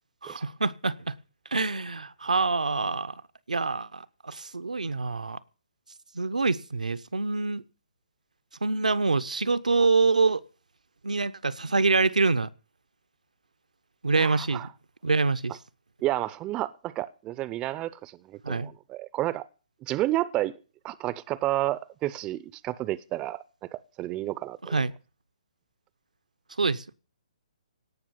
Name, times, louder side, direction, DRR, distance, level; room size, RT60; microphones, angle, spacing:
voice 1, 0.2-1.1 1.5-3.2 3.5-5.4 6.1-7.6 8.6-10.4 11.0-12.5 14.0-14.7 15.0-15.6 18.4-18.7 24.6-24.9 26.6-26.9, right 3 dB, 80° right, 0.9 m, -26 dB
voice 2, 14.2-14.7 16.0-19.5 19.8-20.6 20.8-23.4 23.7-24.8, right 15 dB, 20° right, 0.6 m, -31 dB
17.5 x 6.1 x 9.7 m
figure-of-eight pair, 135°, 4 cm